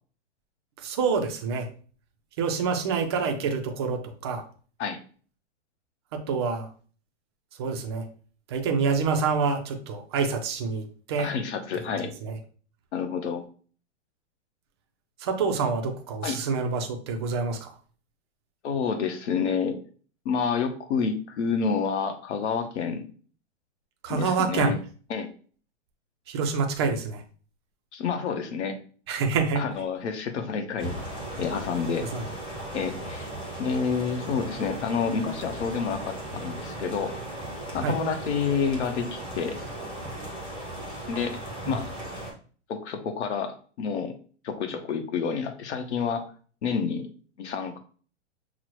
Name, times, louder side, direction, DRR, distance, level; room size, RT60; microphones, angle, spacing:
voice 1, 0.8-1.7 2.4-4.4 6.1-6.7 7.6-8.1 8.5-11.3 12.2-12.4 15.2-17.7 24.0-24.7 26.3-27.2 29.1-29.6 32.1-32.2 37.8-38.0 41.7-41.8, right 5 dB, 25° right, 4 dB, 0.3 m, -27 dB
voice 2, 11.2-12.1 12.9-13.5 16.2-16.4 18.6-19.8 20.2-23.0 24.1-24.8 25.1-25.3 27.9-28.8 29.6-31.0 31.4-32.1 32.7-33.3 33.6-37.2 37.7-39.6 41.1-41.9 42.7-44.2 44.4-46.3 46.6-47.1 47.4-47.8, left 6 dB, 70° left, 7 dB, 0.9 m, -29 dB
sound 1, 30.8-42.3, right 1 dB, 15° left, 1.0 m, -37 dB
5.9 x 2.1 x 3.0 m, 0.42 s
hypercardioid pair, 145°, 36 cm